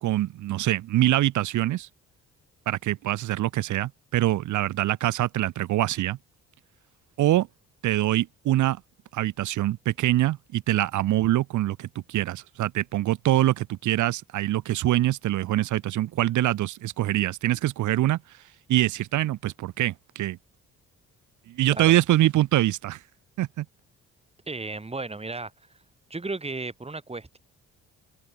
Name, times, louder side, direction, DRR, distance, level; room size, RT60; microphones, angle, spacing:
voice 1, 0.0-1.9 2.7-6.2 7.2-7.5 7.8-8.8 9.1-18.2 18.7-20.4 21.5-23.0 23.4-23.6, right 14 dB, 75° right, 1.3 m, -24 dB
voice 2, 24.5-25.5 26.1-27.4, right 3 dB, 20° right, 6.1 m, -34 dB
cardioid pair, 90°, 30 cm